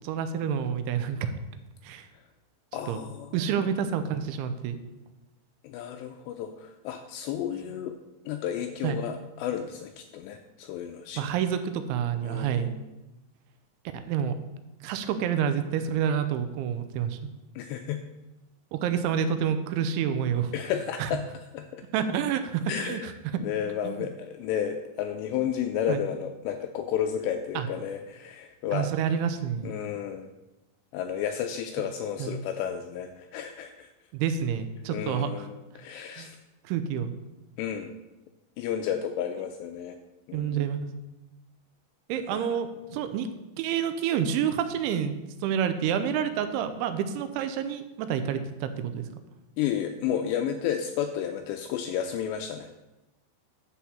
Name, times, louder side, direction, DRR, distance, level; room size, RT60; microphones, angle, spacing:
voice 1, 0.0-1.3 1.8-2.1 2.9-3.0 3.3-4.8 8.8-9.0 11.2-12.7 13.9-14.3 14.8-17.2 18.7-20.5 21.0-21.1 21.9-23.4 23.8-24.1 25.9-26.0 27.6-27.7 28.7-29.7 32.2-32.4 34.1-35.5 36.2-36.3 36.6-37.1 40.3-40.9 42.1-43.3 43.6-45.1 45.4-49.1, right 8 dB, 85° right, 9 dB, 3.0 m, -28 dB
voice 2, 2.7-3.7 5.6-8.0 8.3-11.3 12.2-12.8 17.6-18.0 20.5-21.2 21.5-21.8 22.7-23.1 23.4-28.9 29.6-30.3 30.9-33.9 34.9-36.4 37.6-37.9 38.6-40.0 40.3-40.7 42.3-42.5 49.6-52.7, left 9 dB, 85° left, 6 dB, 2.5 m, -32 dB
10.5 x 4.3 x 7.1 m, 1.0 s
omnidirectional pair, 5.5 m